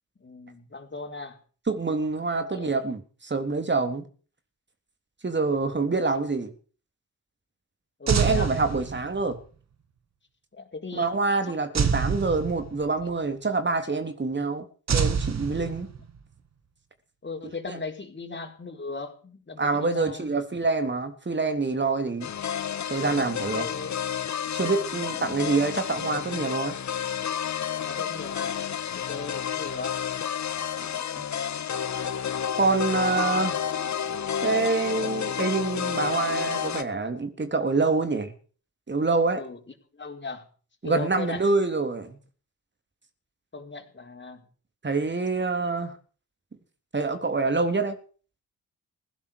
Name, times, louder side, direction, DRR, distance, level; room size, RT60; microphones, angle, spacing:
voice 1, 0.2-1.4 2.5-2.7 8.0-8.5 10.6-11.1 11.5-11.9 17.2-20.3 23.5-24.0 25.1-25.3 27.7-28.6 28.9-30.0 33.2-33.5 39.3-39.6 39.9-40.4 40.8-41.4 43.5-44.4, left 3 dB, 30° left, 4.6 m, -38 dB
voice 2, 1.7-4.1 5.2-6.5 8.1-9.4 10.9-15.9 17.4-17.8 19.6-22.3 22.9-23.7 24.5-26.8 30.8-30.9 31.2-31.3 32.5-33.6 34.4-38.3 38.9-39.4 40.8-42.2 44.8-45.9 46.9-48.0, right 3 dB, 30° right, 3.5 m, -26 dB
sound 1, 8.1-9.3 11.7-13.0 14.9-16.2, right 6 dB, 50° right, 2.3 m, -26 dB
sound 2, 22.2-36.8, left 8 dB, 55° left, 1.5 m, -30 dB
16.5 x 11.5 x 6.8 m
hypercardioid pair, 50°, 35 cm